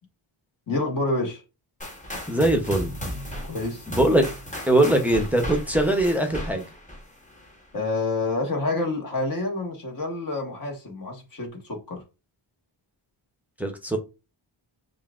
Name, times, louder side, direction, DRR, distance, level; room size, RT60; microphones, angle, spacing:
voice 1, 0.7-1.4 3.4-3.8 7.7-12.0, left 2 dB, 40° left, 1.2 m, -28 dB
sound 1, 1.8-7.7, equal, 15° left, 1.0 m, -35 dB
voice 2, 2.3-2.9 3.9-4.2 4.7-6.6 13.6-14.0, right 1 dB, 5° right, 0.6 m, -21 dB
5.5 x 2.5 x 2.3 m
wide cardioid pair, 175°, 49 cm